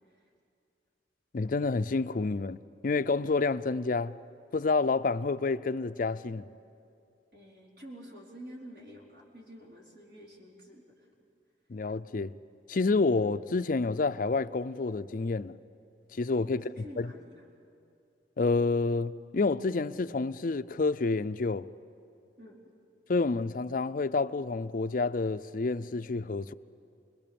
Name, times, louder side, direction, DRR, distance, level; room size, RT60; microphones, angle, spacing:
voice 1, 1.3-2.6 2.8-4.1 4.5-6.5 11.7-12.3 12.7-15.5 16.1-16.6 18.4-21.7 23.1-26.5, left 3 dB, 50° left, 0.5 m, -28 dB
voice 2, 7.3-11.1 16.5-17.4 22.4-22.6, equal, 55° right, 4.3 m, -49 dB
28.5 x 21.0 x 7.0 m
head